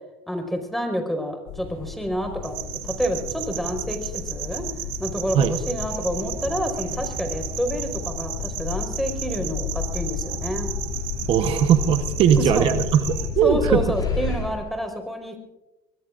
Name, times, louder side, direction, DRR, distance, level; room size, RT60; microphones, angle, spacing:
voice 1, 0.3-2.5 2.8-4.6 5.0-10.7 12.4-12.7 13.4-15.4, equal, ahead, 4 dB, 4.8 m, -28 dB
sound 1, 1.5-14.2, left 8 dB, 80° left, 2.0 m, -32 dB
sound 2, 1.6-14.7, left 1 dB, 35° left, 7.9 m, -40 dB
sound 3, 2.4-13.3, right 13 dB, 80° right, 2.2 m, -34 dB
voice 2, 11.3-13.8, right 9 dB, 55° right, 7 dB, 1.1 m, -19 dB
25.5 x 21.0 x 2.6 m, 1.0 s
supercardioid pair, 105°, 11 cm